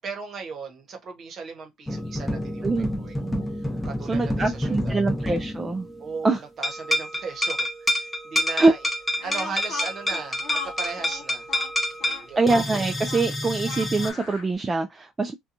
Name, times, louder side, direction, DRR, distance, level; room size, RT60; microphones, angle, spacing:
voice 1, 0.0-3.2 3.5-5.0 6.0-8.9 9.2-11.5 12.0-12.4, right 5 dB, 40° right, 1.0 m, -37 dB
sound 1, 1.9-6.3 6.6-14.1, left 1 dB, 5° left, 0.7 m, -28 dB
voice 2, 4.1-5.9 6.2-6.4 8.5-8.7 12.4-15.3, right 3 dB, 20° right, 0.3 m, -23 dB
Speech, 9.2-14.5, left 5 dB, 75° left, 0.7 m, -38 dB
2.8 x 2.3 x 2.5 m
cardioid pair, 125°, 0 cm